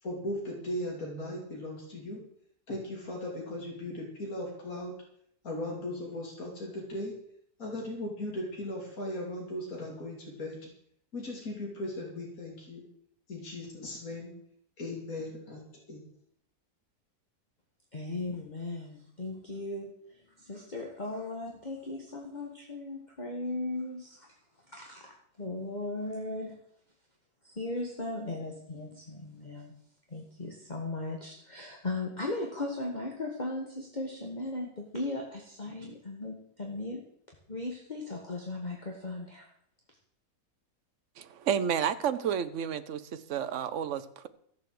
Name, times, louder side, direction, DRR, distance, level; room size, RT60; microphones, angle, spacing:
voice 1, 0.0-2.2 2.7-4.9 5.4-7.2 7.6-10.7 11.1-12.8 13.3-14.3 14.8-15.6 15.9-16.0, left 1 dB, 60° left, -2 dB, 3.2 m, -37 dB
voice 2, 17.9-24.3 24.7-25.1 25.4-26.6 27.4-29.7 30.1-37.0 37.5-39.5, left 2 dB, 25° left, 0 dB, 1.8 m, -37 dB
voice 3, 41.2-44.3, right 8 dB, 55° right, 11 dB, 1.1 m, -31 dB
15.0 x 7.5 x 7.8 m, 0.69 s
omnidirectional pair, 1.7 m